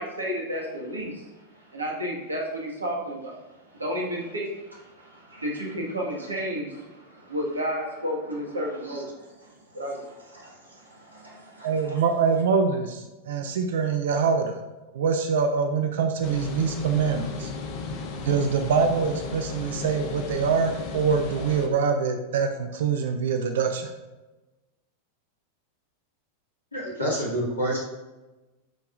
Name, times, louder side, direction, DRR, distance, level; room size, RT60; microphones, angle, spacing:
voice 1, 0.0-12.1, equal, 80° right, -2 dB, 1.7 m, -33 dB
voice 2, 11.6-14.6 14.9-17.5 18.2-23.9, right 5 dB, 60° right, 6 dB, 0.5 m, -24 dB
sound 1, 16.2-21.7, left 4 dB, 45° left, 0.9 m, -35 dB
voice 3, 26.7-27.8, equal, 80° left, -6 dB, 1.9 m, -27 dB
11.5 x 4.7 x 2.5 m, 1.1 s
figure-of-eight pair, 90°, 0 cm